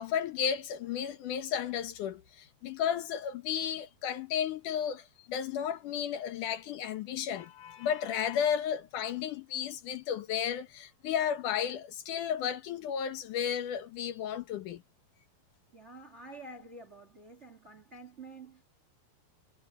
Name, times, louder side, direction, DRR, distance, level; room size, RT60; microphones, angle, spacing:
voice 1, 0.0-14.8, left 8 dB, 70° left, 2.5 m, -33 dB
voice 2, 15.7-18.6, right 2 dB, 25° right, 1.6 m, -49 dB
omnidirectional pair, 4.0 m